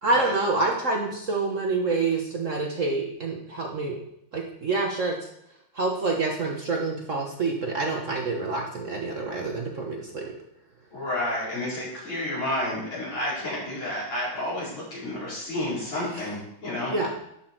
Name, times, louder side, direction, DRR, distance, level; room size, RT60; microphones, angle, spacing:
voice 1, 0.0-4.0 4.3-5.2 5.7-10.3 16.1-16.3 16.9-17.1, right 3 dB, 45° right, 0 dB, 1.2 m, -27 dB
voice 2, 10.9-16.9, left 1 dB, 75° left, -7 dB, 5.2 m, -30 dB
11.5 x 6.1 x 4.5 m, 0.77 s
omnidirectional pair, 2.3 m